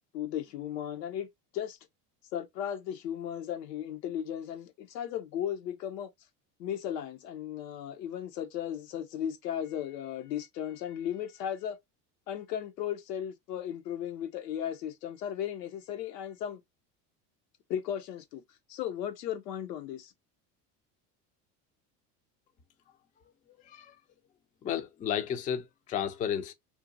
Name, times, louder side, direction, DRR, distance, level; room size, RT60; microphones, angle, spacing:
voice 1, 0.1-1.3 1.5-1.8 2.3-6.1 6.6-11.8 12.3-16.6 17.7-18.4 18.7-20.1, left 10 dB, 90° left, 0.8 m, -36 dB
voice 2, 24.6-26.5, left 9 dB, 20° left, 0.3 m, -32 dB
2.7 x 2.2 x 2.6 m
hypercardioid pair, 90°, 48 cm